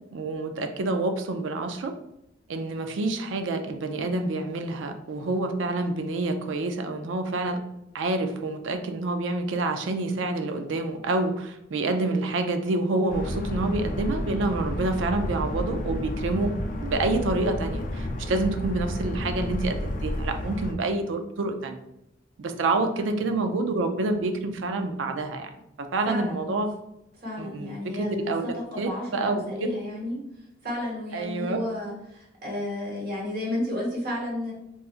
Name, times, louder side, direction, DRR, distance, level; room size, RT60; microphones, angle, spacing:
voice 1, 0.1-1.9 2.5-7.6 7.9-16.5 16.8-21.8 22.4-25.6 25.9-26.7 27.4-28.4 28.8-29.4 31.1-31.6, right 2 dB, 85° right, 6 dB, 0.4 m, -27 dB
sound 1, 13.1-20.7, left 1 dB, 45° left, 0.4 m, -31 dB
voice 2, 26.0-26.5 27.2-30.2 30.6-34.5, left 1 dB, 55° right, -3 dB, 1.0 m, -32 dB
4.1 x 2.4 x 2.4 m, 0.85 s
head